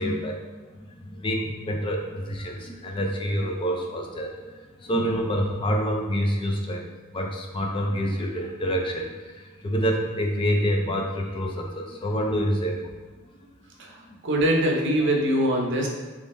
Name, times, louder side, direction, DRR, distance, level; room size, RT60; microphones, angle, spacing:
voice 1, 0.0-6.9 7.1-12.9 14.1-14.2 15.0-15.1, equal, 25° left, 1 dB, 0.3 m, -27 dB
voice 2, 14.2-15.9, right 1 dB, 60° right, 0 dB, 0.7 m, -22 dB
3.6 x 3.4 x 2.6 m, 1.3 s
head